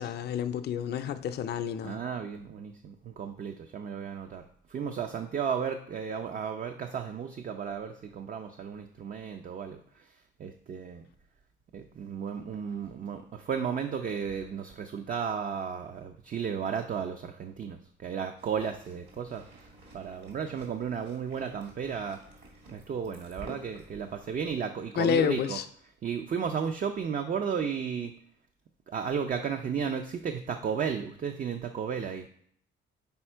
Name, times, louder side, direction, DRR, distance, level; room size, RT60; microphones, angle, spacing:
voice 1, 0.0-2.0 25.0-25.6, left 8 dB, 55° left, 9 dB, 0.5 m, -29 dB
voice 2, 1.8-4.4 4.7-10.0 10.4-11.1 11.7-19.7 19.9-22.2 22.7-25.6 26.0-28.1 28.9-32.3, right 7 dB, 45° right, 6 dB, 0.5 m, -34 dB
sound 1, 18.4-24.5, right 2 dB, 65° right, 1.9 m, -51 dB
5.6 x 4.2 x 4.4 m, 0.64 s
cardioid pair, 90°, 20 cm